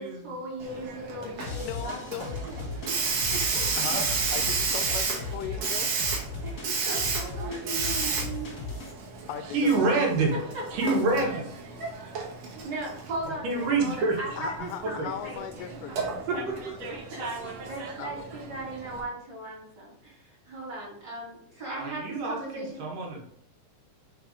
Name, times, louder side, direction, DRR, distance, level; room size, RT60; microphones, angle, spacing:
voice 1, 0.0-3.0 3.3-4.0 4.9-5.0 6.4-8.8 10.8-10.9 11.8-16.1 16.9-22.8, right 1 dB, 35° right, -5 dB, 3.0 m, -38 dB
Hiss, 0.6-19.0, right 4 dB, 60° right, 2.1 m, -33 dB
voice 2, 1.2-2.3 3.8-5.9 9.3-9.8 11.1-11.4 14.4-16.6 16.8-17.3 18.0-18.1, left 9 dB, 85° left, 8 dB, 2.1 m, -38 dB
sound 1, 1.4-8.9, left 3 dB, 35° left, 1.4 m, -38 dB
voice 3, 9.5-10.3 10.7-11.4 13.4-14.2 14.5-15.1 16.3-16.5 21.8-23.2, right 3 dB, 80° right, 0 dB, 2.8 m, -27 dB
5.5 x 4.0 x 5.0 m, 0.69 s
omnidirectional pair, 3.8 m